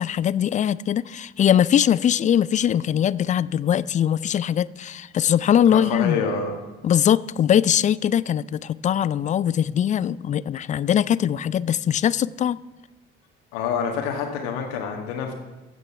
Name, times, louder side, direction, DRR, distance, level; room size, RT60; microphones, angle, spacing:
voice 1, 0.0-6.2 6.8-12.6, left 9 dB, 25° left, 0.4 m, -21 dB
voice 2, 5.7-6.6 13.5-15.3, left 6 dB, 65° left, 1.6 m, -27 dB
15.0 x 8.4 x 5.6 m
figure-of-eight pair, 50°, 32 cm